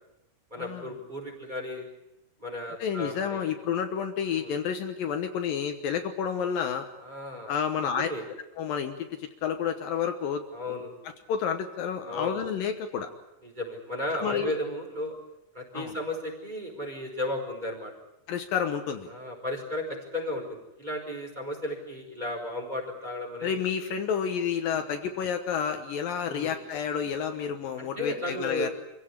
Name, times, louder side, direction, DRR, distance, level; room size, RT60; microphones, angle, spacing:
voice 1, 0.5-1.9 2.4-3.5 4.3-4.5 7.0-8.2 10.5-10.9 12.1-12.4 13.4-15.2 15.5-17.9 19.1-23.7 26.3-26.5 27.8-28.7, left 1 dB, 10° right, 0 dB, 4.7 m, -34 dB
voice 2, 2.8-6.8 7.5-8.1 8.6-10.4 11.3-13.1 14.2-14.5 15.7-15.9 18.3-19.1 23.4-28.7, left 7 dB, 70° left, 6 dB, 2.8 m, -30 dB
26.0 x 16.5 x 9.9 m, 0.90 s
omnidirectional pair, 4.4 m